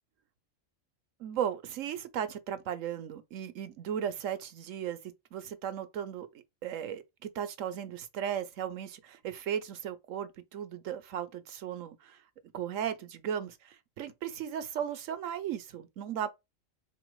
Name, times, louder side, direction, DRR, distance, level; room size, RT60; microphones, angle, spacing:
voice 1, 1.2-5.0 5.3-6.3 6.6-12.2 12.5-16.3, right 9 dB, 80° right, 1.1 m, -36 dB
3.9 x 2.9 x 4.6 m
omnidirectional pair, 1.3 m